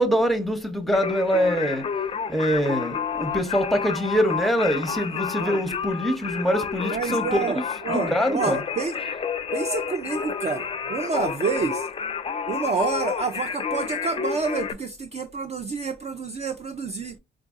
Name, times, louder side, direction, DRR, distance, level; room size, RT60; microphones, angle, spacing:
voice 1, 0.0-1.9 2.3-8.6, equal, ahead, 0.7 m, -24 dB
Singing, 0.9-14.7, left 6 dB, 30° left, 0.4 m, -30 dB
voice 2, 6.9-7.6 7.8-8.9 9.5-11.9 12.5-17.2, right 4 dB, 35° right, 0.4 m, -28 dB
3.8 x 2.6 x 2.4 m
cardioid pair, 90°, 20 cm